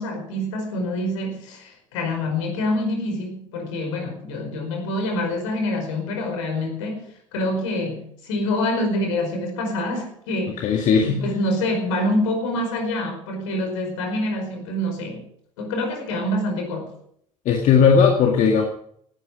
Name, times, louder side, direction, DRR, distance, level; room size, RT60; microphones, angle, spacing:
voice 1, 0.0-10.7 11.0-15.2 15.6-16.9, left 1 dB, 65° left, 4 dB, 5.0 m, -26 dB
voice 2, 10.6-11.2 17.5-18.7, left 6 dB, 45° left, 2 dB, 2.0 m, -17 dB
18.0 x 11.5 x 5.1 m, 0.66 s
figure-of-eight pair, 65°, 17 cm